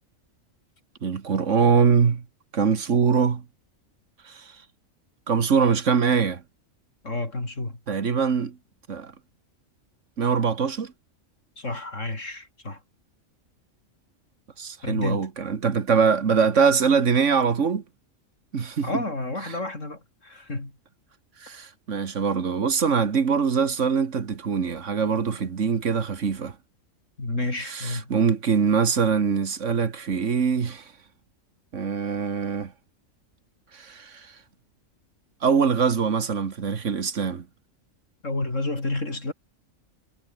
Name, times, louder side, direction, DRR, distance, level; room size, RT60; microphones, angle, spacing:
voice 1, 1.0-2.2 2.5-3.4 4.3-4.5 5.3-6.4 7.9-8.6 8.9-9.1 10.2-10.9 14.6-17.8 18.5-18.9 21.4-26.5 27.7-30.8 31.7-32.7 33.7-34.3 35.4-37.5, right 6 dB, 65° right, 1.8 m, -23 dB
voice 2, 7.0-7.8 11.6-12.8 14.8-15.3 18.8-20.7 27.2-28.1 38.2-39.3, left 2 dB, 65° left, 5.4 m, -30 dB
omnidirectional pair, 1.4 m